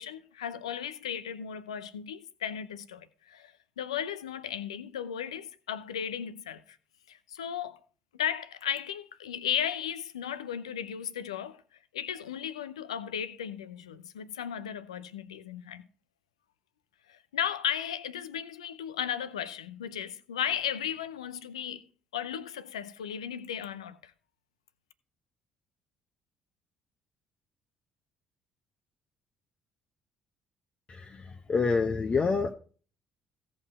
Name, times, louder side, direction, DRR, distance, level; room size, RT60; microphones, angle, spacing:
voice 1, 0.0-6.8 7.1-7.8 8.1-11.6 11.9-15.9 17.1-21.8 22.1-24.1, left 9 dB, 85° left, 0.7 m, -35 dB
voice 2, 30.9-32.5, left 4 dB, 35° left, 1.0 m, -27 dB
16.5 x 5.6 x 4.2 m
hypercardioid pair, 50°, 3 cm